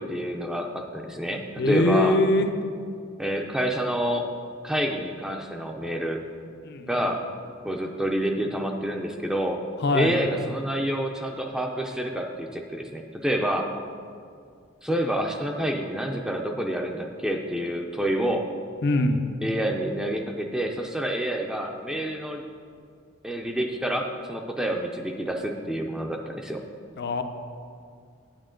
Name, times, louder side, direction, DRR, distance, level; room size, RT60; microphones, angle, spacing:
voice 1, 0.0-1.4 1.7-2.2 3.2-4.3 4.6-6.2 6.9-7.2 7.6-9.6 9.9-13.7 14.8-18.4 19.4-22.4 23.2-26.6, right 1 dB, 5° right, 2 dB, 0.4 m, -28 dB
voice 2, 1.6-2.5 6.6-7.1 9.8-10.2 18.8-19.2 27.0-27.2, left 2 dB, 55° left, 8 dB, 0.6 m, -22 dB
8.9 x 8.3 x 3.8 m, 2.2 s
head